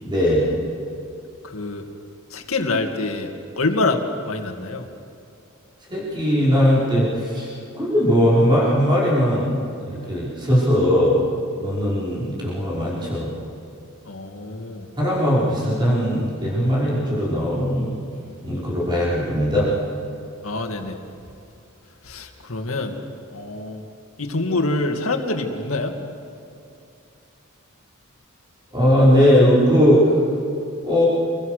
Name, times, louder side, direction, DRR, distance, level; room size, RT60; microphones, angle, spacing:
voice 1, 0.0-0.4 5.9-7.5 7.8-11.2 11.6-13.3 15.0-17.9 18.4-19.7 28.7-30.0 30.8-31.1, equal, 20° right, -6 dB, 5.5 m, -19 dB
voice 2, 1.5-1.8 2.3-3.3 3.6-4.0 4.3-4.8 14.1-14.9 20.4-21.0 22.1-22.9 23.3-23.8 24.2-25.9, left 2 dB, 80° left, 4 dB, 2.2 m, -25 dB
27.0 x 22.0 x 6.7 m, 2.6 s
head